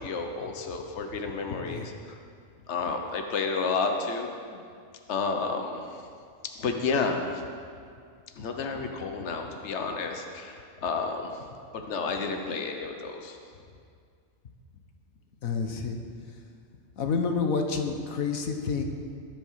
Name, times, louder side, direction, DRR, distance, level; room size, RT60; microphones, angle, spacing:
voice 1, 0.0-2.2 2.7-4.3 5.1-6.0 6.6-7.4 8.4-11.5 11.7-13.4, left 4 dB, 55° left, 4 dB, 1.3 m, -31 dB
voice 2, 15.4-16.0 17.0-18.8, left 5 dB, 85° left, 4 dB, 1.6 m, -29 dB
21.0 x 7.8 x 5.7 m, 2.3 s
omnidirectional pair, 1.4 m